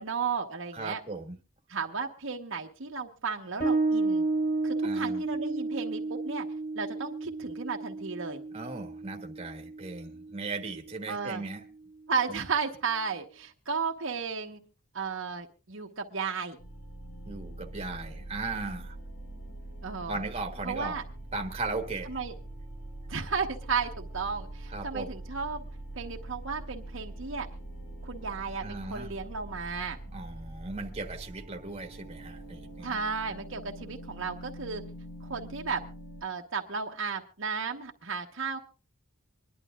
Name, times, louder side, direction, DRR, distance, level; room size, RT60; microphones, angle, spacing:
voice 1, 0.0-1.0 1.7-4.2 4.6-6.4 6.7-8.4 11.1-11.4 12.1-14.6 14.9-16.6 19.8-20.2 20.6-21.0 22.1-22.3 23.1-25.7 26.0-27.5 28.0-30.0 32.8-34.8 35.2-35.8 36.2-38.6, right 5 dB, 60° right, 2 dB, 1.1 m, -34 dB
voice 2, 0.7-1.4 4.8-5.2 8.5-11.6 12.3-12.4 17.2-19.0 20.1-21.0 21.3-22.1 24.7-25.1 28.6-29.2 30.1-33.0, right 3 dB, 30° right, 3 dB, 1.4 m, -37 dB
Bass guitar, 3.6-10.8, right 3 dB, 35° left, 4.9 m, -32 dB
sound 1, 16.6-36.2, right 1 dB, 80° left, 4.7 m, -43 dB
25.5 x 11.0 x 2.4 m, 0.33 s
head